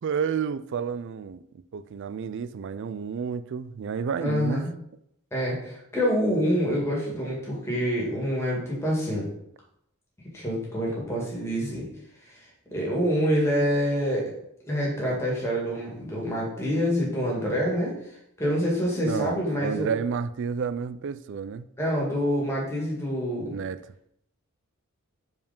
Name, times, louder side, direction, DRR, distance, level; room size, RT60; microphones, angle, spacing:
voice 1, 0.0-1.4 1.7-4.7 19.0-21.7 23.5-23.8, right 6 dB, 55° right, 13 dB, 0.4 m, -30 dB
voice 2, 4.2-4.7 5.3-9.3 10.3-11.9 12.3-12.4 12.7-14.2 14.6-17.9 18.4-19.9 21.8-23.5, equal, 10° left, -4 dB, 2.4 m, -26 dB
5.2 x 4.8 x 5.3 m, 0.74 s
head